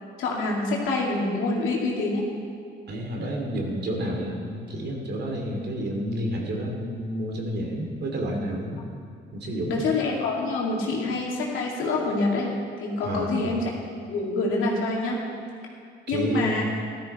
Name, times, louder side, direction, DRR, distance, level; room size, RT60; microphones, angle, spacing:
voice 1, 0.2-2.2 9.7-12.5 12.8-13.7 14.1-15.2 16.1-16.6, left 3 dB, 90° left, -2 dB, 2.6 m, -26 dB
voice 2, 2.9-8.8 9.3-9.8 13.0-13.5 16.1-16.6, right 1 dB, 60° right, 1 dB, 2.7 m, -30 dB
14.0 x 13.0 x 4.3 m, 2.3 s
cardioid pair, 90°, 20 cm